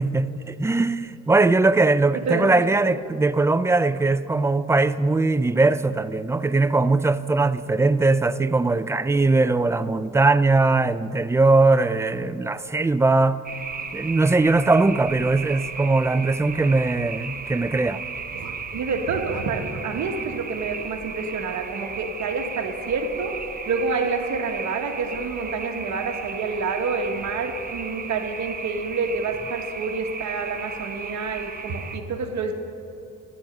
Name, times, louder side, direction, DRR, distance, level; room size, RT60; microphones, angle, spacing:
voice 1, 0.0-13.4 13.9-18.0, right 3 dB, 10° right, 0.3 m, -20 dB
voice 2, 2.1-2.9 18.3-23.4 23.7-32.5, right 4 dB, 65° right, 1.4 m, -28 dB
sound 1, 13.4-32.0, right 5 dB, 30° right, 0.9 m, -35 dB
14.0 x 10.5 x 5.4 m
cardioid pair, 90°, 30 cm